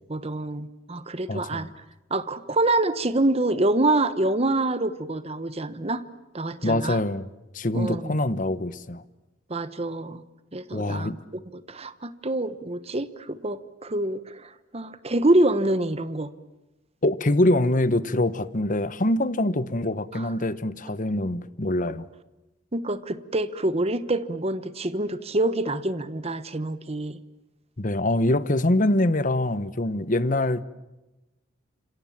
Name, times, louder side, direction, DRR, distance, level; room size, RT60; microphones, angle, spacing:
voice 1, 0.1-1.7 2.1-6.0 6.3-7.0 7.7-8.2 9.5-10.2 10.5-16.3 20.1-20.3 22.7-27.2, right 2 dB, 30° right, 1.1 m, -26 dB
voice 2, 1.3-1.7 6.6-7.3 7.5-9.0 10.7-11.1 17.0-22.1 27.8-30.6, left 1 dB, 40° left, 1.1 m, -24 dB
29.5 x 26.5 x 7.4 m
head